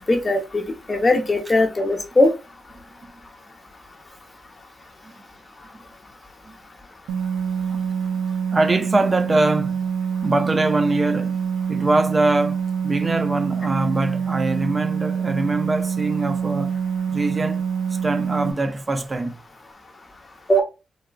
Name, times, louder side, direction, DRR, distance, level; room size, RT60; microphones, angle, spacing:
voice 1, 0.1-0.6 0.9-2.3 20.5-20.6, left 1 dB, 30° left, 0.8 m, -19 dB
sound 1, 7.1-18.5, right 7 dB, 90° right, 0.4 m, -25 dB
voice 2, 8.5-9.8 10.2-11.4 11.7-16.8 17.1-17.7 18.0-19.4, right 2 dB, 30° right, 0.4 m, -23 dB
3.9 x 2.3 x 2.2 m
cardioid pair, 65°, 0 cm